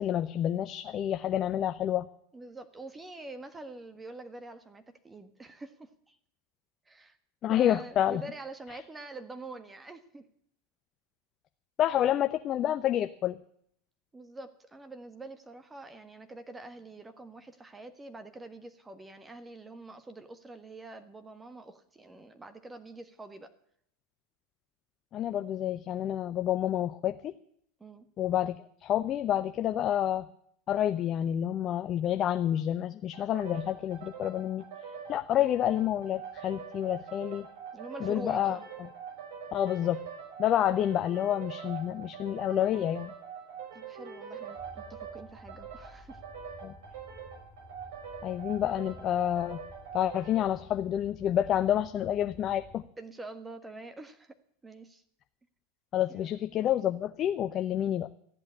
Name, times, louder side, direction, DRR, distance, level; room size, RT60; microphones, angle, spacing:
voice 1, 0.0-2.1 7.4-8.2 11.8-13.4 25.1-27.3 28.2-30.3 30.7-34.6 35.1-37.5 38.0-38.6 39.5-40.0 40.4-43.1 46.6-46.7 48.2-49.6 49.9-52.8 55.9-58.1, left 11 dB, 40° left, 10 dB, 0.7 m, -28 dB
voice 2, 2.3-6.2 6.8-7.2 7.5-10.2 14.1-23.5 27.8-28.1 37.7-38.7 43.7-46.2 53.0-54.4 54.6-55.0 56.1-56.3, right 2 dB, 15° right, 8 dB, 1.5 m, -45 dB
sound 1, 33.1-50.6, right 7 dB, 70° right, 5.6 m, -44 dB
sound 2, 44.5-52.9, left 1 dB, 5° left, 3.1 m, -53 dB
14.5 x 8.6 x 9.8 m, 0.67 s
hypercardioid pair, 90°, 0 cm